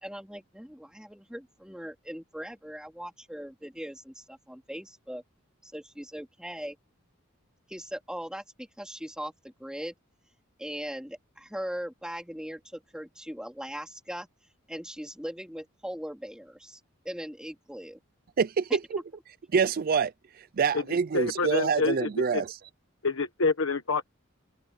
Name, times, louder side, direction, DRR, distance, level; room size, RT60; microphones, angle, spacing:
voice 1, 0.0-5.2 5.6-6.8 7.7-9.9 10.6-14.3 14.7-16.8 17.0-18.0 18.7-19.0, equal, 5° right, 3.0 m, -39 dB
voice 2, 18.4-18.8 19.5-20.1 20.6-22.6, right 5 dB, 45° right, 0.4 m, -26 dB
voice 3, 21.1-22.4 23.0-24.0, left 3 dB, 70° left, 1.2 m, -27 dB
head